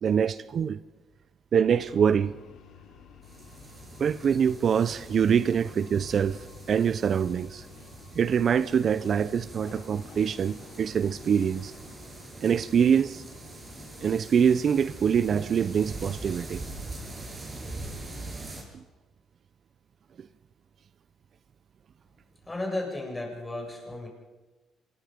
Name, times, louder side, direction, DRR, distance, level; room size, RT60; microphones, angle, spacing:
voice 1, 0.0-0.8 1.5-2.3 4.0-6.4 6.7-7.6 8.1-11.7 12.4-13.2 14.0-16.6, right 7 dB, 50° right, 0.6 m, -24 dB
sound 1, 1.6-18.3, left 6 dB, 75° left, 3.1 m, -51 dB
sound 2, 3.2-18.6, right 2 dB, 30° right, 6.5 m, -43 dB
voice 2, 22.4-24.1, left 2 dB, 15° left, 7.2 m, -34 dB
26.5 x 21.0 x 5.3 m
cardioid pair, 90°, 0 cm